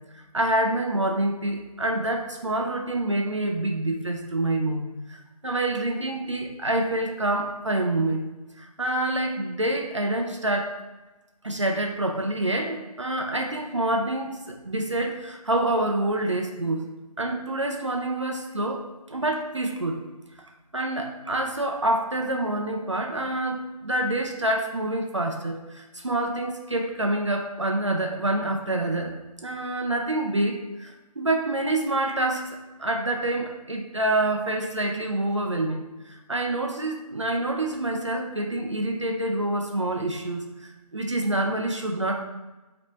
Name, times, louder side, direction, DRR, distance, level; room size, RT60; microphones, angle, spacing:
voice 1, 0.1-8.2 8.6-10.7 11.4-16.8 17.2-20.0 20.4-29.1 29.4-42.2, right 1 dB, 50° right, 2 dB, 0.4 m, -27 dB
3.0 x 2.9 x 4.2 m, 1.1 s
figure-of-eight pair, 180°, 20 cm